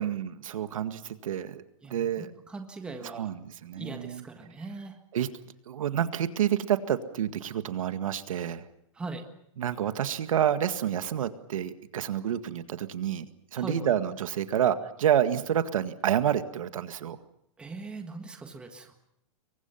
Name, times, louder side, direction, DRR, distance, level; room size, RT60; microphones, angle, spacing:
voice 1, 0.0-1.6 1.9-2.3 3.0-4.2 5.1-5.3 5.7-8.7 9.6-13.3 13.5-17.2, right 10 dB, 75° right, 9 dB, 1.9 m, -28 dB
voice 2, 1.8-3.3 3.8-5.0 8.9-9.2 13.5-13.9 17.6-18.9, right 3 dB, 5° right, 4 dB, 1.6 m, -40 dB
27.5 x 23.0 x 5.8 m, 0.76 s
supercardioid pair, 175°, 17 cm